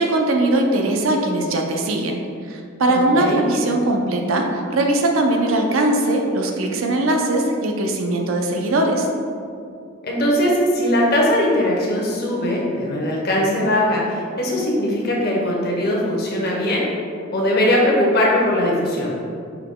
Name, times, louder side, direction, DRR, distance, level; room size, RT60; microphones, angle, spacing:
voice 1, 0.0-9.1, right 2 dB, 85° right, 2 dB, 0.5 m, -20 dB
voice 2, 2.9-3.4 10.0-16.8 17.3-19.1, left 1 dB, 50° left, -3 dB, 0.9 m, -20 dB
5.7 x 2.2 x 3.7 m, 2.4 s
head